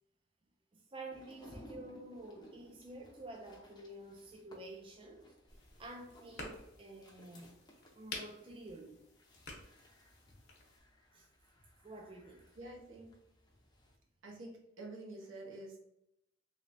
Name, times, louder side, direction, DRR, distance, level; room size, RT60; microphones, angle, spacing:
voice 1, 0.7-5.3 5.8-7.6 7.9-9.0 11.1-11.3 11.8-12.4, right 2 dB, 25° right, 2 dB, 0.3 m, -50 dB
sound 1, 1.1-14.0, equal, 20° left, 0.6 m, -60 dB
sound 2, 5.5-10.8, left 3 dB, 55° left, 0.8 m, -51 dB
voice 2, 12.6-13.1 14.2-15.8, right 2 dB, 75° right, -1 dB, 0.9 m, -48 dB
3.1 x 3.0 x 2.6 m, 0.81 s
head